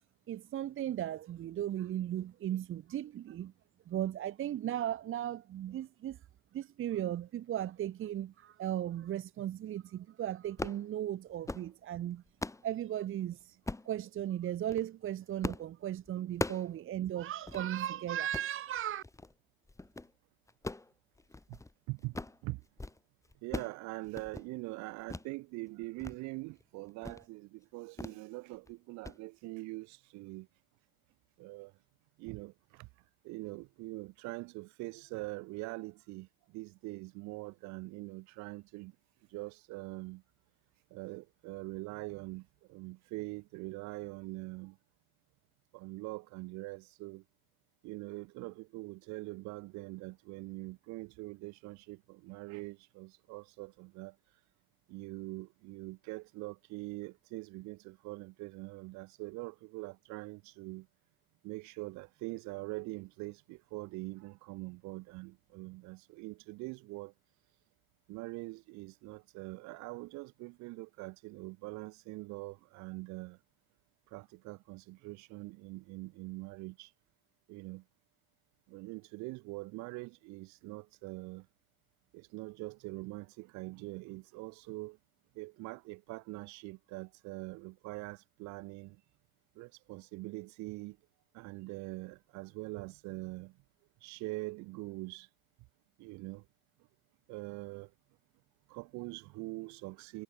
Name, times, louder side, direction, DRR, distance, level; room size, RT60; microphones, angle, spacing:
voice 1, 0.3-3.5 3.9-6.2 6.5-12.2 12.6-13.6 13.8-19.0, right 11 dB, 40° right, 2.3 m, -36 dB
sound 1, 10.5-10.8 11.3-11.7 12.1-12.7 13.7-13.9 14.5-14.9 15.4-15.7 16.0-16.7 17.1-17.2 17.5-17.6 18.2-18.5 19.0-19.3 19.7-20.1 20.5-21.7 22.0-22.4 22.7-23.0 23.2-23.8 24.1-24.5 25.1-25.3 25.7-26.2 26.5-26.6 27.0-27.3 28.0-28.2 28.5-28.7 29.0-29.2, left 2 dB, 10° left, 4.2 m, -40 dB
voice 2, 21.9-22.6 23.4-30.5 31.4-31.7 32.2-32.9 33.2-39.0 39.3-40.2 40.9-44.8 45.7-47.2 47.8-54.2 54.9-60.9 61.4-67.1 68.1-73.4 74.1-76.9 77.5-77.8 78.7-81.5 82.1-85.0 85.3-89.0 89.5-91.0 91.3-93.6 94.0-95.3 96.0-96.5 97.3-97.9 98.7-100.2, right 24 dB, 60° right, 6.2 m, -43 dB
supercardioid pair, 100°, 31 cm